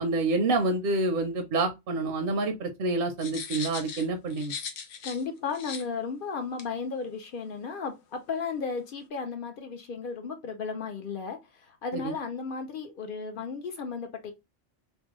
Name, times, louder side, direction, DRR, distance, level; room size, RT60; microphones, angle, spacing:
voice 1, 0.0-4.5 11.9-12.1, right 2 dB, 60° right, 0.6 m, -28 dB
sound 1, 3.2-5.2 5.5-5.8 6.6-6.7, left 6 dB, 85° left, 1.0 m, -38 dB
voice 2, 5.0-14.3, left 5 dB, 60° left, 0.6 m, -34 dB
3.2 x 2.1 x 2.9 m
omnidirectional pair, 1.2 m